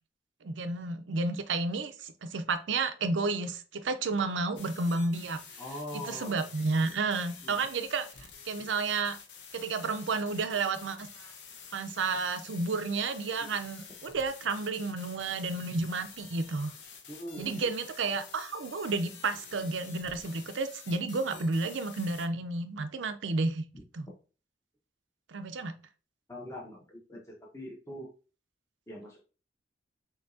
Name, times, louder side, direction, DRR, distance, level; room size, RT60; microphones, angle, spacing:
voice 1, 0.4-5.4 5.9-8.1 8.4-9.2 9.5-11.3 11.7-16.7 17.4-23.7 23.9-24.1 25.3-25.8, right 3 dB, 85° right, 9 dB, 0.5 m, -31 dB
sound 1, 4.6-22.3, left 6 dB, 70° left, 0.8 m, -49 dB
voice 2, 5.6-6.4 7.4-7.6 17.1-17.7 23.7-23.8 26.3-28.1 28.9-29.2, left 1 dB, 15° left, -2 dB, 0.8 m, -42 dB
6.0 x 2.8 x 2.6 m, 0.36 s
head